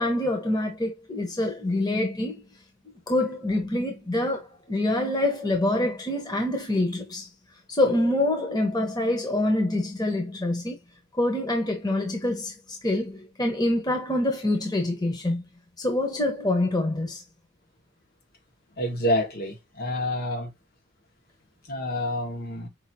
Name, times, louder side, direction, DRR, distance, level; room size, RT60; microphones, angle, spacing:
voice 1, 0.0-2.4 2.8-7.3 7.8-10.8 11.2-12.5 12.8-15.4 15.8-17.2, left 1 dB, 20° left, 1.2 m, -26 dB
voice 2, 18.8-20.5 21.7-22.7, left 1 dB, 55° left, 1.7 m, -28 dB
5.6 x 2.8 x 2.8 m
head